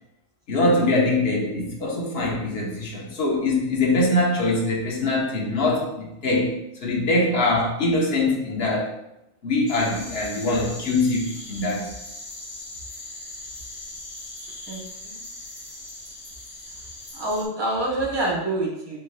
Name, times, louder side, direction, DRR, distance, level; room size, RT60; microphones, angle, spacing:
voice 1, 0.5-6.6 6.8-8.9 9.4-11.9, left 2 dB, 60° left, -2 dB, 1.2 m, -23 dB
sound 1, 9.7-17.4, left 2 dB, 85° left, 1.5 m, -39 dB
voice 2, 14.7-15.2 17.1-19.0, right 2 dB, 25° right, -3 dB, 1.0 m, -27 dB
7.6 x 3.0 x 2.2 m, 0.86 s
omnidirectional pair, 1.2 m